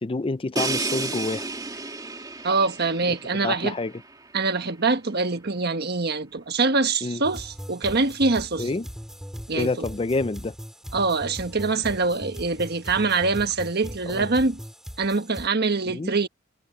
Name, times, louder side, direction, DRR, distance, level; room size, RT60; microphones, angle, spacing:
voice 1, 0.0-1.5 3.4-3.9 7.0-7.2 8.6-8.9 9.5-10.5 14.0-14.3 15.9-16.1, left 3 dB, 30° left, 0.5 m, -27 dB
Crash cymbal, 0.6-4.4, right 3 dB, 20° right, 2.5 m, -32 dB
voice 2, 2.4-3.7 4.3-8.7 9.5-9.9 10.9-14.6 15.0-16.3, right 3 dB, 55° right, 1.4 m, -24 dB
sound 1, 7.2-15.5, equal, ahead, 2.8 m, -39 dB
head